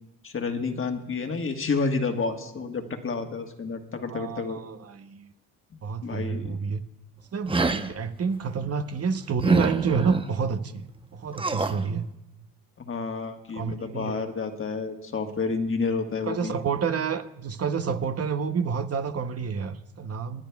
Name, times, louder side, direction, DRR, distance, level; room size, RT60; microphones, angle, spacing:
voice 1, 0.2-4.6 6.0-6.6 12.8-16.6, left 4 dB, 35° left, 5 dB, 1.5 m, -30 dB
voice 2, 4.1-5.3 5.8-6.8 7.3-12.0 13.5-14.2 16.2-20.4, right 6 dB, 40° right, 9 dB, 0.9 m, -29 dB
sound 1, 7.5-7.9 9.4-10.2 11.3-11.8, right 3 dB, 15° right, 0.7 m, -25 dB
29.0 x 10.0 x 2.3 m, 0.90 s
cardioid pair, 80°, 35 cm